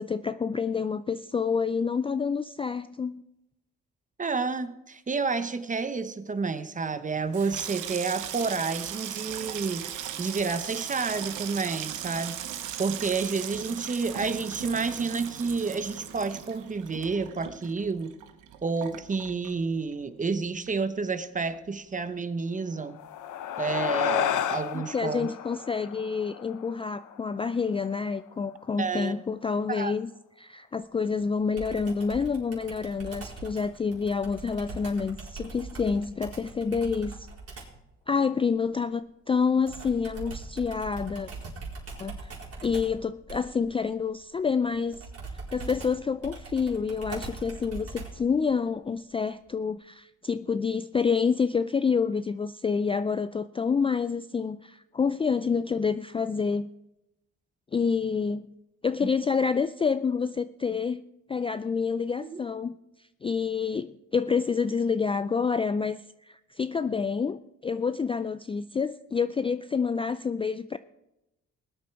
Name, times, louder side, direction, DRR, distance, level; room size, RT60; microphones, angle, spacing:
voice 1, 0.0-3.2 24.7-30.1 30.4-37.3 38.1-41.3 42.0-42.3 42.6-45.0 45.5-56.7 57.7-58.5 58.8-62.8 63.2-70.8, left 5 dB, 20° left, 13 dB, 0.3 m, -28 dB
voice 2, 4.2-12.4 12.8-18.1 18.6-23.0 23.6-25.3 28.8-29.1 29.7-29.9 59.0-59.1 62.2-62.4, right 4 dB, 25° right, 12 dB, 1.0 m, -30 dB
Water tap faucet / Sink (filling or washing), 7.2-20.0 20.3-21.0 21.2-21.6, right 11 dB, 90° right, 1.0 m, -38 dB
sound 1, 22.8-27.6, left 10 dB, 80° left, 0.9 m, -32 dB
Computer keyboard, 31.6-37.8 39.7-48.3, right 3 dB, 50° right, 4.5 m, -41 dB
19.0 x 8.5 x 4.7 m, 0.91 s
cardioid pair, 90°, 30 cm